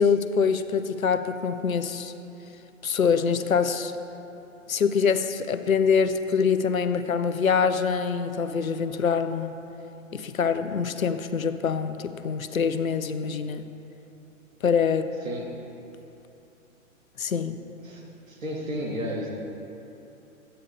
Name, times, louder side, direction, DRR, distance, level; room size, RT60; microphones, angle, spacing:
voice 1, 0.0-2.1 2.8-3.9 4.7-9.5 10.1-13.6 14.6-15.1 17.2-17.6, left 6 dB, 75° left, 10 dB, 0.7 m, -24 dB
voice 2, 17.8-19.3, equal, 70° right, -2 dB, 2.0 m, -33 dB
12.0 x 8.9 x 3.4 m, 3.0 s
figure-of-eight pair, 115°, 41 cm